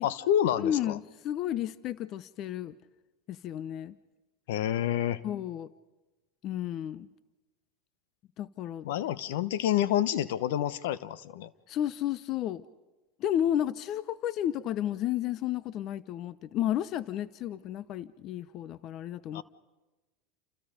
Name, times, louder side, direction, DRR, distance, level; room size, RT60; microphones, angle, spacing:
voice 1, 0.0-1.0 4.5-5.2 8.8-11.5 19.3-19.4, left 11 dB, 75° left, 16 dB, 1.0 m, -28 dB
voice 2, 0.6-2.7 3.3-4.0 5.2-5.7 6.4-7.1 8.4-8.9 11.7-12.6 13.2-19.4, left 11 dB, 50° left, 17 dB, 0.8 m, -32 dB
29.0 x 28.0 x 5.2 m, 1.1 s
hypercardioid pair, 95°, 0 cm